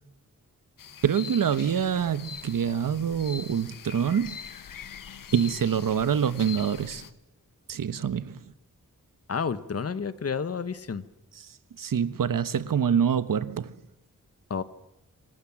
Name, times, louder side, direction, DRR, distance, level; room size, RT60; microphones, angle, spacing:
sound 1, 0.8-7.1, left 8 dB, 85° left, 1.2 m, -43 dB
voice 1, 1.0-4.4 5.3-7.0 7.7-8.5 11.8-13.7, right 8 dB, 80° right, 1.3 m, -26 dB
voice 2, 9.3-11.0 14.5-14.6, left 6 dB, 45° left, 1.3 m, -30 dB
27.5 x 25.0 x 7.4 m
wide cardioid pair, 150°, 32 cm